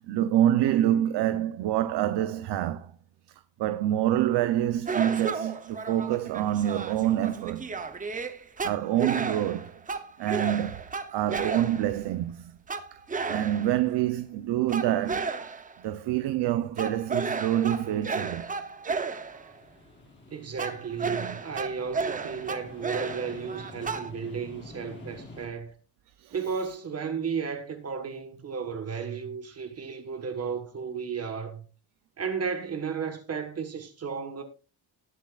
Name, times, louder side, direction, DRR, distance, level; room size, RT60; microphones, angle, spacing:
voice 1, 0.0-2.9 3.6-7.7 8.6-9.8 10.2-10.9 11.1-12.5 13.2-15.3 15.8-18.5 21.0-21.4 26.2-26.7, right 12 dB, 80° right, 0.8 m, -27 dB
sound 1, 4.9-12.1 12.7-13.9 14.7-15.8 16.8-19.5 20.6-24.1, right 4 dB, 20° right, 0.8 m, -33 dB
sound 2, 18.5-25.5, left 2 dB, 25° left, 3.6 m, -49 dB
voice 2, 20.3-25.7 26.3-31.6 32.2-34.4, right 6 dB, 35° right, 1.4 m, -34 dB
19.5 x 7.4 x 2.5 m
cardioid pair, 165°, 41 cm